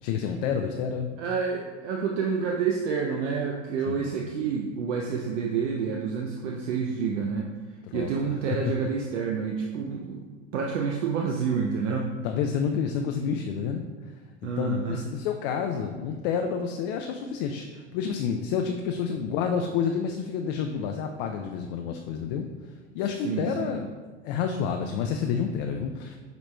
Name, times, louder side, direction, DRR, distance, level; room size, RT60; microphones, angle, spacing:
voice 1, 0.0-1.1 3.9-4.1 7.9-8.3 12.2-13.8 14.4-22.5 22.9-23.9 24.2-26.2, left 7 dB, 50° left, 4 dB, 0.4 m, -29 dB
voice 2, 1.2-7.5 7.9-12.1 14.4-15.0 23.2-23.5, right 6 dB, 75° right, 0 dB, 0.6 m, -28 dB
7.8 x 2.9 x 2.2 m, 1.4 s
hypercardioid pair, 95°, 36 cm